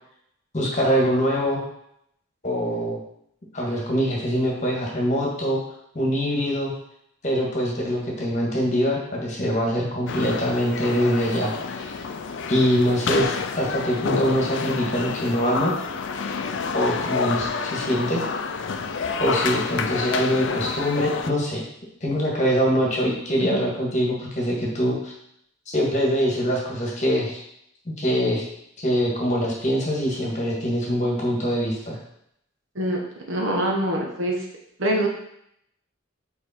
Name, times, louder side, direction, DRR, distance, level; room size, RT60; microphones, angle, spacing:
voice 1, 0.5-1.6 2.4-3.0 3.5-5.6 5.9-6.7 7.2-11.9 12.5-15.7 16.7-18.2 19.2-21.6 22.0-25.1 25.7-27.4 27.8-28.5 28.8-32.0, equal, 35° left, -3 dB, 1.6 m, -23 dB
sound 1, 10.1-21.3, left 5 dB, 60° left, 0.4 m, -29 dB
voice 2, 33.3-34.4 34.8-35.1, right 1 dB, 65° right, 0 dB, 1.2 m, -24 dB
5.1 x 4.5 x 4.3 m, 0.75 s
head